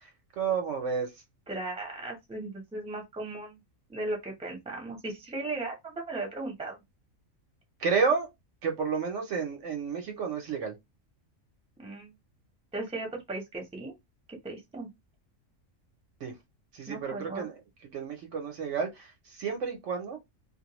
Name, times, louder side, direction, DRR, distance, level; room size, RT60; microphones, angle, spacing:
voice 1, 0.4-1.1 7.8-8.3 8.6-10.7 16.2-16.3 16.7-17.6 17.9-20.2, right 5 dB, 70° right, 1.0 m, -30 dB
voice 2, 1.5-3.6 3.9-6.8 11.8-12.1 12.7-14.0 14.4-14.9 16.9-17.5, right 2 dB, 5° right, 0.6 m, -37 dB
2.4 x 2.1 x 2.9 m
omnidirectional pair, 1.4 m